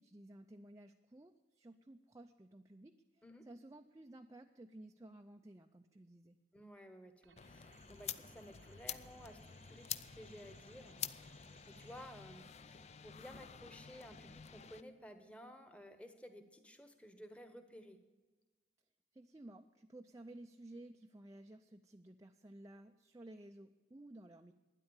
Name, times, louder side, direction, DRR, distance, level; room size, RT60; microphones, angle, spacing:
voice 1, 0.0-6.4 19.1-24.5, right 1 dB, 20° right, 4 dB, 0.4 m, -55 dB
voice 2, 6.5-11.0 11.7-18.0, equal, 5° left, 7 dB, 1.2 m, -55 dB
sound 1, 7.2-12.5, right 5 dB, 70° right, 0.8 m, -67 dB
sound 2, 7.4-14.8, left 9 dB, 35° left, 0.4 m, -48 dB
12.0 x 10.0 x 7.2 m, 1.2 s
head